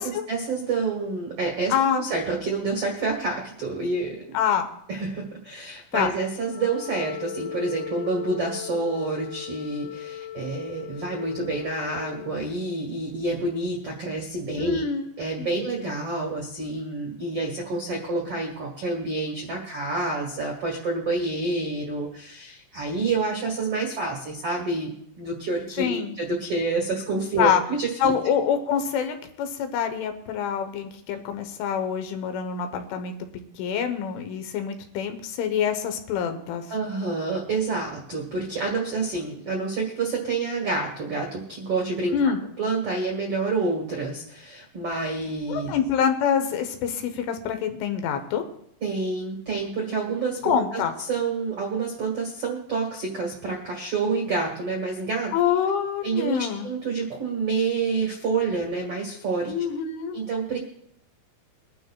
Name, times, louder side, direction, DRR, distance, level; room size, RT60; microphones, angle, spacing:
voice 1, 0.0-4.4 4.9-14.8 15.2-28.1 36.7-42.3 42.6-45.7 48.8-50.8 51.1-55.3 56.0-59.5 60.1-60.6, right 3 dB, 75° right, 0 dB, 1.3 m, -28 dB
voice 2, 1.7-2.0 4.3-4.7 5.9-6.1 14.6-15.0 15.4-15.7 25.8-26.2 27.4-27.6 28.0-33.1 33.6-36.7 42.1-42.4 45.5-48.4 50.4-50.9 55.3-56.7 59.5-60.2, left 8 dB, 75° left, 7 dB, 3.4 m, -26 dB
Wind instrument woodwind instrument, 6.3-12.6, left 10 dB, 60° left, 3.8 m, -38 dB
23.5 x 11.5 x 2.4 m, 0.72 s
omnidirectional pair, 5.8 m